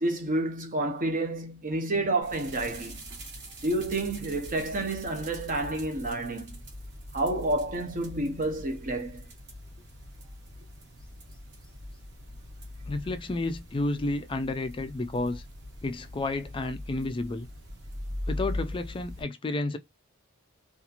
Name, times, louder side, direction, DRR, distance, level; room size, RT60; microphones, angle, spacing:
voice 1, 0.0-3.0 3.6-6.6 7.1-9.2, right 2 dB, 40° right, 0.8 m, -29 dB
sound 1, 2.2-19.2, left 1 dB, 55° right, 1.1 m, -41 dB
voice 2, 12.9-15.4 15.8-17.5 18.3-19.8, left 2 dB, 25° left, 0.4 m, -31 dB
2.8 x 2.5 x 2.4 m
head